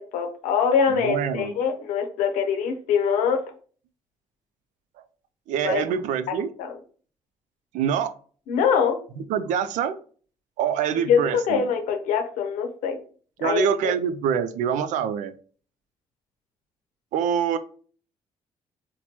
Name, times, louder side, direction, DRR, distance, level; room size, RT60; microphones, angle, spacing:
voice 1, 0.0-3.4 5.6-5.8 6.6-6.7 8.5-9.0 11.1-13.0 13.4-13.9, left 6 dB, 80° left, 5 dB, 0.6 m, -23 dB
voice 2, 0.9-1.5 5.5-6.5 7.7-8.1 9.3-10.0 10.6-11.6 13.4-15.3 17.1-17.6, right 8 dB, 80° right, 12 dB, 0.4 m, -25 dB
4.3 x 2.2 x 2.8 m, 0.43 s
supercardioid pair, 55°, 13 cm